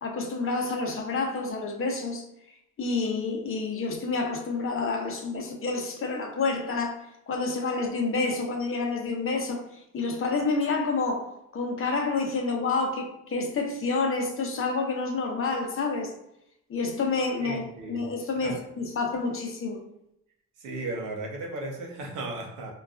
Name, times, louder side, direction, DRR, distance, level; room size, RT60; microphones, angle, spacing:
voice 1, 0.0-2.2 2.8-16.1 16.7-17.6 17.9-19.8, left 3 dB, 45° left, 2 dB, 0.7 m, -29 dB
voice 2, 17.4-18.0 18.4-18.6 20.6-22.7, right 2 dB, 85° right, 0 dB, 0.8 m, -35 dB
3.8 x 2.3 x 2.4 m, 0.78 s
cardioid pair, 90°, 30 cm